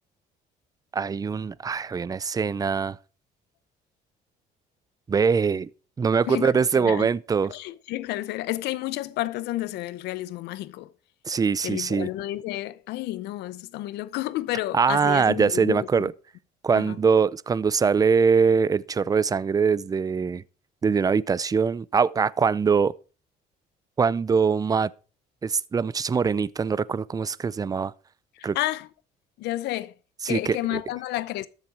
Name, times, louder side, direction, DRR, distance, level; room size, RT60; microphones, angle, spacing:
voice 1, 0.9-3.0 5.1-5.7 6.0-7.5 11.3-12.1 14.7-16.1 16.6-20.4 20.8-22.9 24.0-24.9 25.4-27.9 28.4-28.6 30.2-30.8, right 5 dB, 20° right, 0.5 m, -23 dB
voice 2, 6.3-7.1 7.5-10.9 11.6-16.1 16.7-17.0 28.3-28.9 29.4-29.9 30.3-31.5, left 16 dB, 85° left, 0.7 m, -31 dB
13.5 x 7.3 x 4.8 m
cardioid pair, 110°, 17 cm